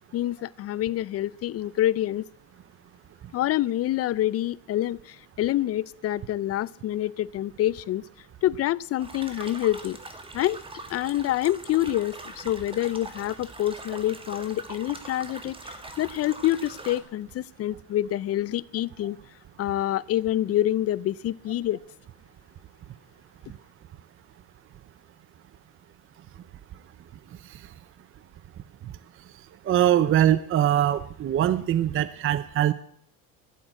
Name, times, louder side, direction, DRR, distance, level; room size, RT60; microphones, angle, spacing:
voice 1, 0.1-2.2 3.3-8.0 8.4-10.0 10.3-10.6 10.9-19.2 19.6-21.8, left 13 dB, 40° left, 0.5 m, -27 dB
sound 1, 9.0-17.0, right 2 dB, 15° right, 2.0 m, -42 dB
voice 2, 29.7-32.7, right 11 dB, 35° right, 0.6 m, -22 dB
13.0 x 8.7 x 9.0 m
cardioid pair, 130°, 36 cm